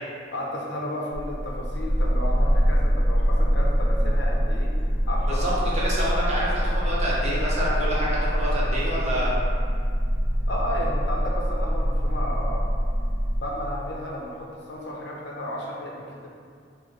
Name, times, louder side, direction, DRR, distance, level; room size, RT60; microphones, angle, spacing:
voice 1, 0.3-4.7 5.1-5.5 10.5-12.7 13.4-16.3, left 1 dB, 70° left, -2 dB, 0.6 m, -33 dB
sound 1, 1.1-13.4, equal, 15° right, 1.2 m, -24 dB
voice 2, 5.3-9.3, equal, 40° right, -6 dB, 0.7 m, -27 dB
6.1 x 2.1 x 2.6 m, 2.2 s
head